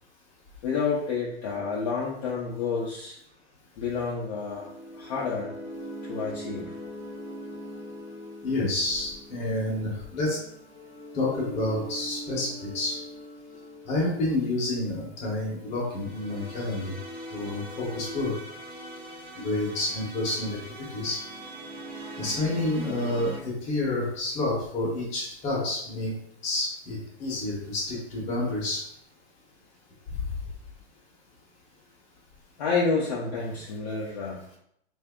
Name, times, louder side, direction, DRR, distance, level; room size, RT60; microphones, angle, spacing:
voice 1, 0.6-3.2 3.8-4.7 4.9-5.5 6.0-6.7 18.8-19.3 32.6-34.4, left 5 dB, 40° left, -5 dB, 0.6 m, -29 dB
sound 1, 4.2-23.4, equal, 15° right, 0.6 m, -42 dB
voice 2, 8.4-10.4 11.1-13.0 13.8-17.0 17.3-18.3 19.4-20.6 20.9-21.2 22.2-26.1 26.4-28.8, left 2 dB, 20° left, -5 dB, 0.9 m, -29 dB
3.3 x 2.6 x 3.5 m, 0.72 s
supercardioid pair, 170°, 33 cm